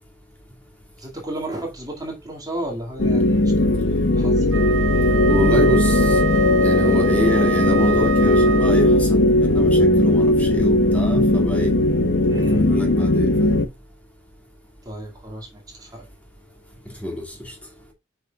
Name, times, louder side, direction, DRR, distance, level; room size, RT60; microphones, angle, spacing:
voice 1, 1.0-3.8 4.1-4.7 12.2-12.7 14.8-16.1, right 1 dB, 20° right, 2.1 m, -33 dB
sound 1, 3.0-13.7, left 1 dB, 70° left, 0.9 m, -18 dB
Wind instrument woodwind instrument, 4.4-9.1, right 8 dB, 90° right, 0.5 m, -28 dB
voice 2, 5.3-6.0 6.6-11.7 12.5-13.6 17.0-17.2, left 1 dB, 10° left, 2.1 m, -26 dB
7.7 x 5.7 x 2.3 m
head